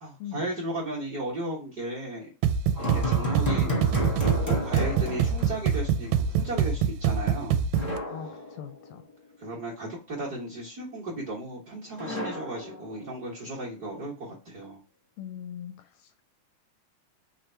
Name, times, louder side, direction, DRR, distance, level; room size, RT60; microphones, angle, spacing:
voice 1, 0.0-2.3 2.8-3.7 4.4-7.6 9.4-14.8, right 1 dB, 55° right, 1.1 m, -35 dB
sound 1, 2.4-8.0, right 7 dB, 85° right, 1.9 m, -25 dB
sound 2, 2.7-6.1 6.4-6.5 7.7-9.1 12.0-13.5, left 1 dB, 45° left, 0.5 m, -33 dB
voice 2, 8.1-9.0 15.2-16.2, left 9 dB, 80° left, 1.5 m, -41 dB
5.0 x 2.4 x 4.3 m
omnidirectional pair, 3.5 m